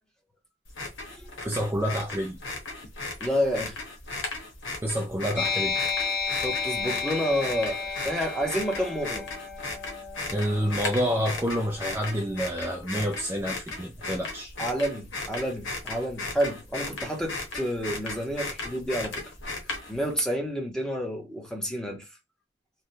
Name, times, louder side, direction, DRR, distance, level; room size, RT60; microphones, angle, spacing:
sound 1, 0.7-20.1, left 3 dB, 90° left, 1.1 m, -36 dB
voice 1, 1.4-2.4 4.8-5.8 10.3-14.5, equal, 15° right, 0.4 m, -28 dB
voice 2, 3.2-3.8 6.4-9.3 14.6-19.2 19.9-22.0, equal, 5° left, 0.8 m, -29 dB
sound 2, 5.4-12.4, left 4 dB, 55° left, 1.4 m, -33 dB
3.3 x 2.2 x 2.7 m
head